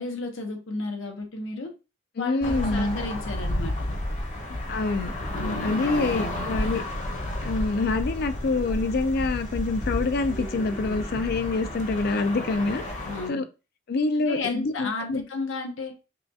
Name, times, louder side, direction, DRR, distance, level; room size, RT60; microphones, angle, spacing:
voice 1, 0.0-1.7 2.2-3.9 5.3-6.5 10.9-11.0 13.0-13.4 14.3-15.9, left 3 dB, 75° left, 0.8 m, -33 dB
voice 2, 2.2-3.0 4.7-5.1 5.4-6.8 7.4-12.8 13.3-13.4 13.9-15.2, left 3 dB, 55° left, 0.4 m, -26 dB
sound 1, 2.4-13.3, left 1 dB, 35° left, 0.9 m, -31 dB
5.5 x 2.3 x 2.7 m
head